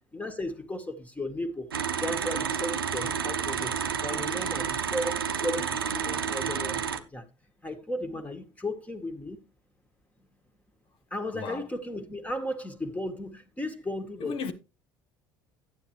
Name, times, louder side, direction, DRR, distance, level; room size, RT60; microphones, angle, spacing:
voice 1, 0.1-1.7 2.0-3.7 4.0-7.3 7.6-9.4 11.1-14.5, left 1 dB, 10° left, 1.9 m, -35 dB
sound 1, 1.7-7.0, right 7 dB, 85° right, 0.8 m, -30 dB
voice 2, 11.3-11.7 14.2-14.5, left 5 dB, 50° left, 1.3 m, -34 dB
11.5 x 9.6 x 3.2 m
figure-of-eight pair, 60°, 12 cm